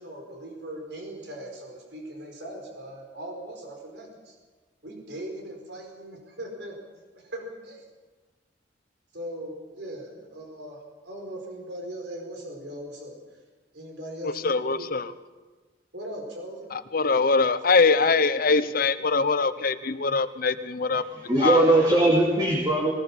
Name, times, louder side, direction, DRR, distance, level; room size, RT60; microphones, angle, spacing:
voice 1, 0.0-4.3 4.8-6.8 7.1-7.9 9.1-13.2 13.7-14.9 15.9-16.7 20.1-20.2, right 1 dB, 70° right, 2 dB, 4.8 m, -39 dB
voice 2, 14.4-15.0 16.7-21.0 21.4-21.6, left 4 dB, 55° left, 13 dB, 0.9 m, -23 dB
voice 3, 20.9-22.9, right 1 dB, 25° right, -2 dB, 2.9 m, -21 dB
20.5 x 18.5 x 7.4 m, 1.3 s
head